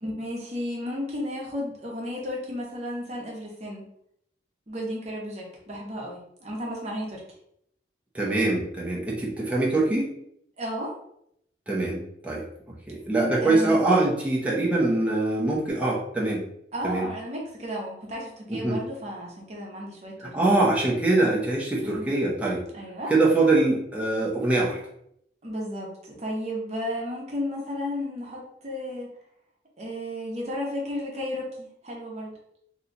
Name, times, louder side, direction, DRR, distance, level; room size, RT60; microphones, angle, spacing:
voice 1, 0.0-3.8 4.7-7.2 10.6-10.9 13.4-13.8 16.7-20.3 21.8-22.1 22.7-23.1 25.4-29.1 29.8-32.3, equal, 40° right, -2 dB, 0.9 m, -33 dB
voice 2, 8.1-10.1 11.7-12.4 12.9-16.4 16.8-17.1 18.5-18.8 20.2-22.6 23.1-24.8, right 2 dB, 10° right, -5 dB, 0.8 m, -23 dB
2.8 x 2.3 x 3.9 m, 0.73 s
head